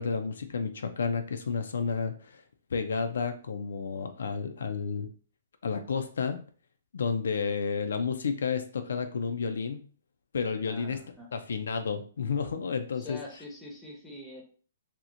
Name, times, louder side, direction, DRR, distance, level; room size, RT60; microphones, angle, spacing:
voice 1, 0.0-2.4 2.7-5.1 5.6-6.4 6.9-9.8 10.3-11.0 11.3-13.2, left 5 dB, 75° left, 7 dB, 0.3 m, -31 dB
voice 2, 10.7-11.3 12.9-14.4, left 1 dB, 5° left, -2 dB, 0.7 m, -44 dB
2.8 x 2.0 x 2.5 m, 0.41 s
hypercardioid pair, 140°, 0 cm